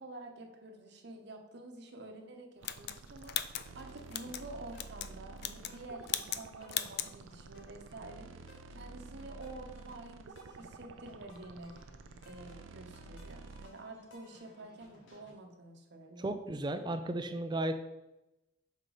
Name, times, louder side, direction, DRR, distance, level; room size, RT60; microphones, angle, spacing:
voice 1, 0.0-11.7 12.2-16.3, right 2 dB, 60° right, 4 dB, 0.9 m, -49 dB
sound 1, 2.6-4.4 4.8-5.1 5.4-5.8 6.1-6.4 6.7-7.1, left 11 dB, 55° left, 0.3 m, -37 dB
sound 2, 2.6-13.7, right 4 dB, 80° right, 0.4 m, -51 dB
sound 3, 3.7-15.3, left 1 dB, 70° left, 1.3 m, -59 dB
voice 2, 16.2-17.8, right 1 dB, 20° right, 8 dB, 0.4 m, -34 dB
5.6 x 3.9 x 4.9 m, 0.96 s
head